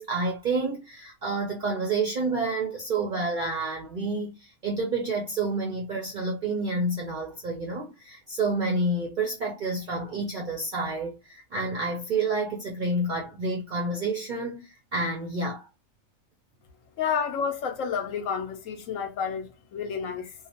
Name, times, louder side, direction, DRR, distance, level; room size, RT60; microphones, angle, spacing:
voice 1, 0.0-15.7, right 3 dB, 60° right, 0.5 m, -29 dB
voice 2, 17.0-20.3, left 6 dB, 70° left, 1.0 m, -30 dB
2.8 x 2.0 x 2.8 m
omnidirectional pair, 1.4 m